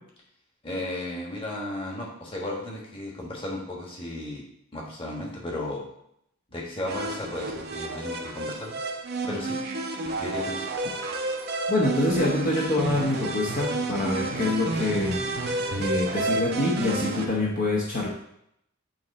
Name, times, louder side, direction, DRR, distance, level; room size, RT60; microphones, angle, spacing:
voice 1, 0.6-4.4 4.7-5.8 6.5-8.8 9.3-9.6 10.2-10.7 17.0-17.3, left 1 dB, 25° left, -3 dB, 1.4 m, -34 dB
sound 1, 6.9-17.3, right 2 dB, 50° right, 0.7 m, -30 dB
voice 2, 11.7-18.1, left 2 dB, 45° left, -4 dB, 1.0 m, -26 dB
9.3 x 3.1 x 4.2 m, 0.75 s
head